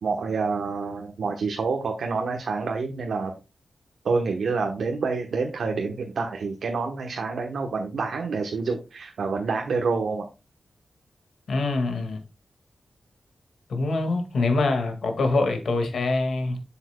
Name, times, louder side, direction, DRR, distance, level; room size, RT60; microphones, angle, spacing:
voice 1, 0.0-3.3 4.0-10.3, right 4 dB, 90° right, 1.0 m, -27 dB
voice 2, 11.5-12.2 13.7-16.6, left 3 dB, 85° left, 1.8 m, -24 dB
7.9 x 7.1 x 2.2 m
wide cardioid pair, 100°, 0 cm